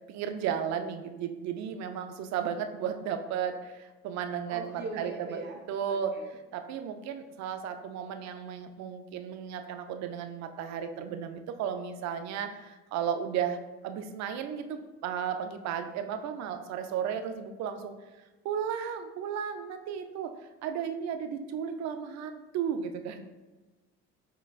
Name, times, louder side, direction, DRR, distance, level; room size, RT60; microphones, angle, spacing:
voice 1, 0.1-5.4 5.7-6.2 6.5-13.6 13.8-17.9 18.4-20.3 20.6-23.3, right 8 dB, 65° right, 7 dB, 0.5 m, -34 dB
voice 2, 4.5-5.6 5.9-6.3, right 3 dB, 40° right, 1 dB, 0.9 m, -40 dB
6.6 x 2.2 x 2.4 m, 1.2 s
supercardioid pair, 80°, 29 cm